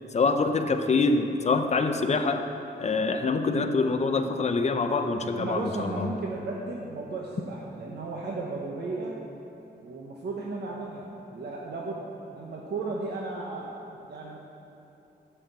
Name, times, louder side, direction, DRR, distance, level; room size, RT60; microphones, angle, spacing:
voice 1, 0.1-2.4 2.8-6.1, left 3 dB, 40° left, 6 dB, 0.7 m, -25 dB
voice 2, 5.3-9.2 9.8-12.0 12.3-13.7 14.1-14.4, right 3 dB, 70° right, -3 dB, 1.1 m, -35 dB
12.5 x 5.8 x 8.2 m, 3.0 s
wide cardioid pair, 155°, 18 cm